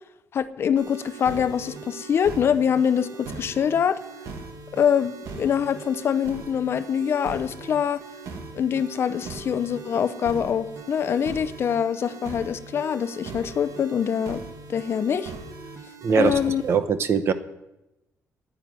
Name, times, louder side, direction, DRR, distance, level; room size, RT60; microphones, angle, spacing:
voice 1, 0.3-4.0 4.7-8.0 8.5-14.4 14.7-15.3 16.2-16.6, left 8 dB, 45° left, 13 dB, 0.6 m, -24 dB
sound 1, 0.8-16.8, right 4 dB, 70° right, 1.7 m, -40 dB
voice 2, 16.0-17.3, right 6 dB, 45° right, 11 dB, 0.9 m, -22 dB
9.7 x 9.7 x 9.3 m, 0.94 s
cardioid pair, 160°, 6 cm